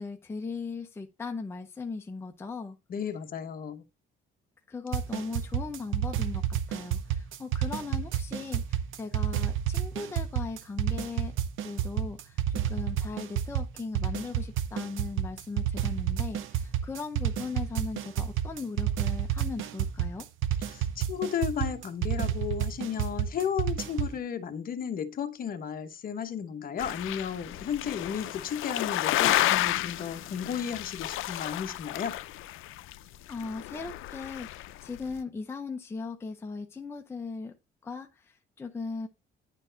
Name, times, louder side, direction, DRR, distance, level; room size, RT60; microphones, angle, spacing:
voice 1, 0.0-2.8 4.7-11.3 11.6-20.3 33.3-37.5 37.8-39.1, left 4 dB, 10° left, 0.6 m, -38 dB
voice 2, 2.9-3.8 20.7-32.1, left 8 dB, 45° left, 1.0 m, -34 dB
sound 1, 4.9-24.2, right 10 dB, 75° right, 0.8 m, -30 dB
sound 2, 26.8-35.1, left 15 dB, 80° left, 0.5 m, -31 dB
9.9 x 4.5 x 3.8 m
cardioid pair, 175°, 21 cm